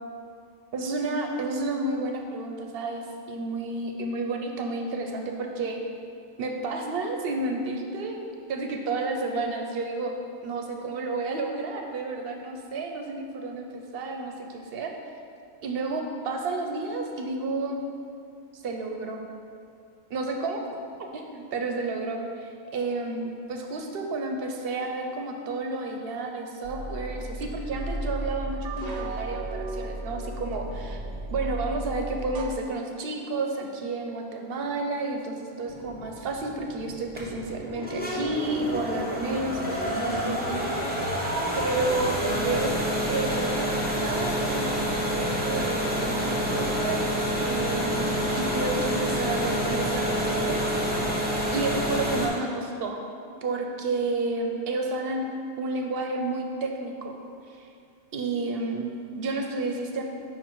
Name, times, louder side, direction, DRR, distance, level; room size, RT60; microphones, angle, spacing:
voice 1, 0.7-5.8 6.4-8.2 8.5-10.1 10.4-14.9 15.6-17.8 18.5-19.2 20.1-20.6 21.1-31.0 31.3-41.0 41.6-42.7 43.1-47.1 47.4-48.1 48.4-50.6 51.5-53.0 53.4-55.3 55.6-57.2 57.5-57.7 58.1-60.0, right 3 dB, 60° right, 3 dB, 0.7 m, -31 dB
sound 1, 26.6-32.5, right 1 dB, 85° right, 0.3 m, -34 dB
sound 2, 35.7-52.3, equal, 10° right, 0.8 m, -28 dB
5.4 x 4.7 x 4.5 m, 2.5 s
omnidirectional pair, 1.3 m